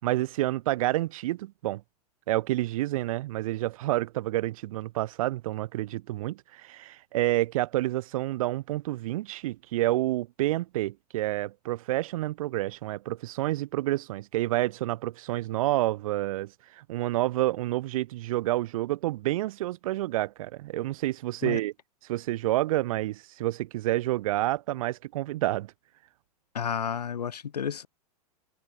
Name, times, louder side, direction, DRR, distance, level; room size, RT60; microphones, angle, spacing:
voice 1, 0.0-1.8 2.3-21.7 22.1-25.7, right 16 dB, 60° right, 3.7 m, -29 dB
voice 2, 26.5-27.9, left 7 dB, 80° left, 1.1 m, -31 dB
figure-of-eight pair, 100°, 20 cm